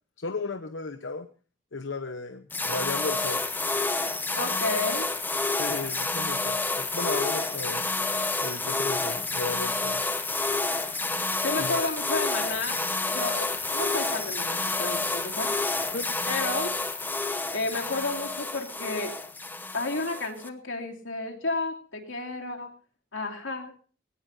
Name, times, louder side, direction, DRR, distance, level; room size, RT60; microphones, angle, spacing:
voice 1, 0.2-1.3 1.7-3.4 5.6-7.8 8.4-10.0 11.6-11.8 15.9-16.1, left 3 dB, 70° left, 8 dB, 0.9 m, -34 dB
sound 1, 2.5-20.5, left 3 dB, 10° left, 0.9 m, -29 dB
voice 2, 4.4-5.1 11.4-12.8 13.1-15.6 16.2-16.8 17.5-19.2 19.7-22.7 23.1-23.7, left 3 dB, 90° left, 2 dB, 2.8 m, -32 dB
20.0 x 18.0 x 2.7 m, 0.37 s
head